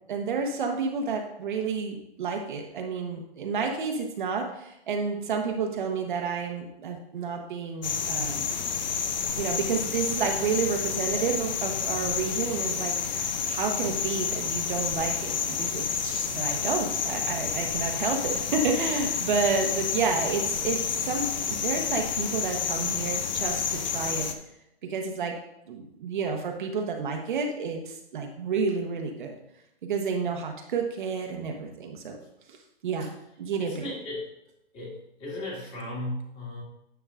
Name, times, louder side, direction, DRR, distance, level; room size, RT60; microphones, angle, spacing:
voice 1, 0.1-8.5 9.4-24.3 24.8-25.3 25.7-29.3 29.8-32.2 32.5-32.6 32.8-33.1 33.4-33.9, right 5 dB, 50° right, 2 dB, 1.0 m, -30 dB
sound 1, 7.8-24.3, left 7 dB, 45° left, 0.6 m, -30 dB
voice 2, 33.6-34.3 34.7-36.6, left 1 dB, 15° left, -3 dB, 2.0 m, -36 dB
10.0 x 6.9 x 2.5 m, 0.82 s
hypercardioid pair, 155°, 33 cm